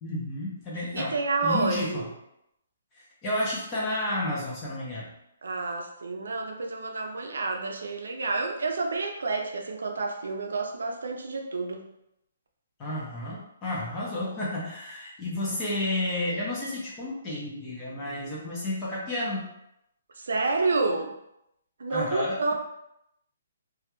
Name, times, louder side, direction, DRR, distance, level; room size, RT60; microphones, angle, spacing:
voice 1, 0.0-1.2 1.4-2.1 3.2-5.1 12.8-19.5 21.9-22.5, left 1 dB, 15° left, -6 dB, 0.5 m, -31 dB
voice 2, 0.9-2.1 5.4-11.9 20.2-21.1 21.8-22.5, right 3 dB, 85° right, 3 dB, 0.4 m, -29 dB
2.2 x 2.1 x 2.9 m, 0.80 s
hypercardioid pair, 175°, 0 cm